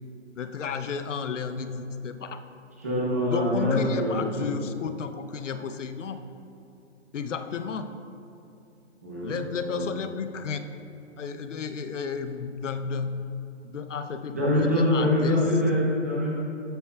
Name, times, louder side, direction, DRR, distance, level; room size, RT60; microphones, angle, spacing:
voice 1, 0.3-2.4 3.3-6.2 7.1-7.9 9.2-10.7 11.2-13.3 13.6-15.4, left 6 dB, 80° left, 9 dB, 0.8 m, -32 dB
voice 2, 2.8-4.5 9.0-9.9 14.3-16.3, left 1 dB, 15° right, -6 dB, 0.8 m, -25 dB
13.0 x 9.0 x 2.3 m, 2.6 s
hypercardioid pair, 180°, 36 cm